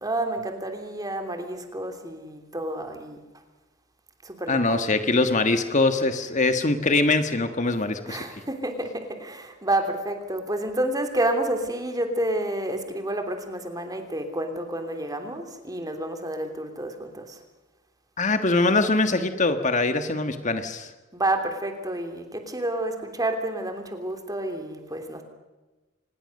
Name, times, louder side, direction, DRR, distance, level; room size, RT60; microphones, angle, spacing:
voice 1, 0.0-3.2 4.2-4.8 6.2-6.3 8.1-17.4 21.1-25.2, right 1 dB, 20° right, 5 dB, 3.1 m, -29 dB
voice 2, 4.5-8.2 18.2-20.9, left 3 dB, 40° left, 8 dB, 1.6 m, -23 dB
26.0 x 20.5 x 6.6 m, 1.2 s
head